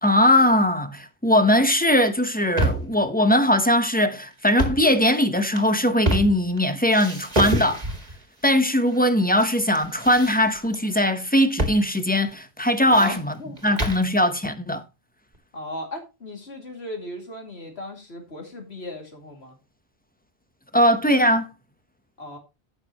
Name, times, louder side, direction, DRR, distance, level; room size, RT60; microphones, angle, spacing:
voice 1, 0.0-7.8 8.4-13.3 13.6-14.8 20.7-21.5, left 1 dB, 10° left, 1.0 m, -20 dB
sound 1, 2.2-3.0 4.4-4.9 5.4-6.6 6.9-8.2 8.9-9.5 9.7-10.8 11.6-11.8 12.1-12.2 12.6-14.1, right 1 dB, 35° right, 2.1 m, -27 dB
voice 2, 12.9-13.8 15.5-19.6 22.2-22.4, left 1 dB, 70° left, 2.9 m, -36 dB
16.0 x 6.3 x 3.0 m
omnidirectional pair, 1.1 m